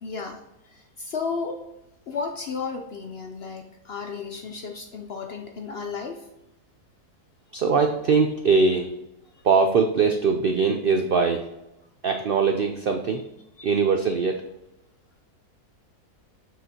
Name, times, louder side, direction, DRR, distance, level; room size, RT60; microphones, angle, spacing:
voice 1, 0.0-1.6 2.1-6.3 9.3-9.4 13.6-13.7, left 5 dB, 65° left, 4 dB, 0.6 m, -34 dB
voice 2, 7.5-8.9 9.4-11.5 12.0-13.2 13.6-14.4, right 5 dB, 90° right, 5 dB, 0.4 m, -21 dB
6.8 x 6.2 x 2.8 m, 0.91 s
omnidirectional pair, 1.6 m